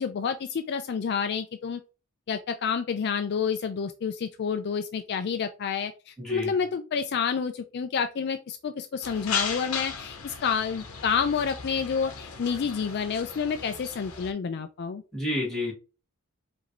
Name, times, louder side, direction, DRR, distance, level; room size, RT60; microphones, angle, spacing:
voice 1, 0.0-1.8 2.3-15.0, left 6 dB, 50° left, 0.4 m, -29 dB
voice 2, 6.2-6.5 15.1-15.7, left 1 dB, ahead, 2.0 m, -30 dB
sound 1, 9.0-14.3, left 5 dB, 70° left, 0.9 m, -36 dB
4.9 x 2.6 x 3.0 m
head